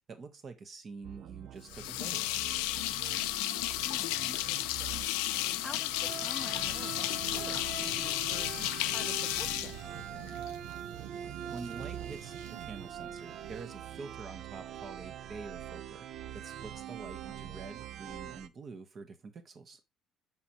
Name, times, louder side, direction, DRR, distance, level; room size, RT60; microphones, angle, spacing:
voice 1, 0.0-2.4 11.5-19.8, right 4 dB, 45° right, 1.4 m, -46 dB
sound 1, 1.0-18.5, right 10 dB, 65° right, 0.5 m, -44 dB
sound 2, 1.7-10.5, left 16 dB, 90° left, 0.4 m, -33 dB
voice 2, 3.8-5.0 5.6-9.7, left 3 dB, 15° left, 0.5 m, -49 dB
sound 3, 6.1-14.1, right 9 dB, 90° right, 1.1 m, -49 dB
5.8 x 5.7 x 2.9 m
supercardioid pair, 75°, 0 cm